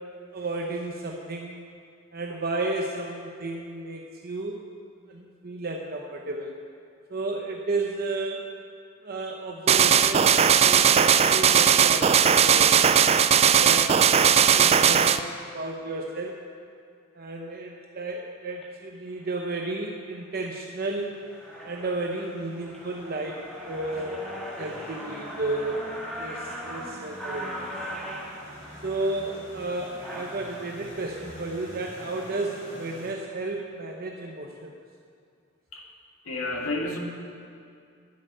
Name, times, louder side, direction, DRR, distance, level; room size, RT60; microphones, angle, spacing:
voice 1, 0.3-1.6 2.1-4.6 5.1-6.5 7.1-8.5 9.0-13.0 13.6-15.3 15.5-16.4 17.1-21.1 21.6-24.2 24.6-25.8 26.2-27.7 28.8-34.7, right 2 dB, 45° right, 0 dB, 0.8 m, -32 dB
sound 1, 9.7-15.2, right 8 dB, 30° right, 0.3 m, -18 dB
sound 2, 18.5-18.7 19.3-19.6 20.0-20.5 20.9-21.0 21.2-30.7, equal, ahead, 1.8 m, -39 dB
sound 3, 20.8-33.1, equal, 65° left, 3.8 m, -47 dB
voice 2, 36.2-37.0, left 2 dB, 85° left, 0 dB, 1.8 m, -30 dB
10.0 x 7.8 x 8.9 m, 2.3 s
head